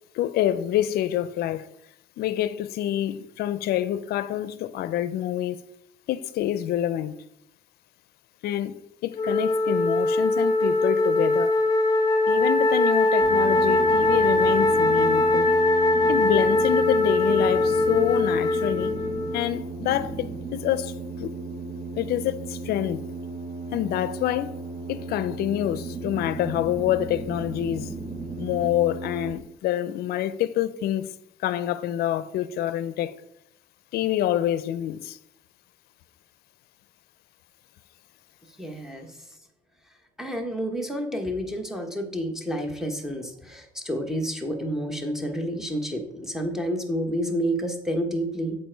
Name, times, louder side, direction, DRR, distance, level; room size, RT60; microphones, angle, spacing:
voice 1, 0.1-1.7 2.2-5.6 6.1-7.2 8.4-11.5 12.3-15.5 16.1-18.9 19.3-20.9 21.2-21.3 22.0-23.0 23.7-24.6 24.9-27.9 28.4-31.1 31.4-33.2 33.9-35.2, left 12 dB, 70° left, 0.5 m, -27 dB
Wind instrument woodwind instrument, 9.2-19.5, left 2 dB, 20° left, 0.8 m, -21 dB
sound 1, 13.2-29.3, right 3 dB, 40° right, 1.9 m, -35 dB
voice 2, 38.6-39.1 40.2-48.6, equal, 5° right, 1.1 m, -29 dB
7.3 x 4.4 x 4.5 m
cardioid pair, 110°, 17 cm